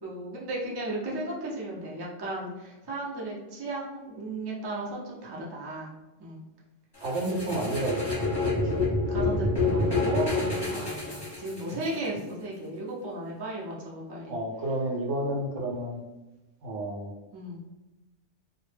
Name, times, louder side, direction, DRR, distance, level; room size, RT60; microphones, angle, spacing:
voice 1, 0.0-5.9 6.2-6.4 9.1-14.3 17.3-17.6, right 1 dB, 40° right, -4 dB, 0.3 m, -35 dB
sound 1, 7.0-11.9, left 2 dB, 20° left, 0.8 m, -28 dB
voice 2, 7.0-8.0 8.6-8.8 14.3-16.0 16.6-17.1, right 1 dB, 70° right, -1 dB, 0.9 m, -30 dB
2.1 x 2.0 x 3.2 m, 1.0 s
omnidirectional pair, 1.3 m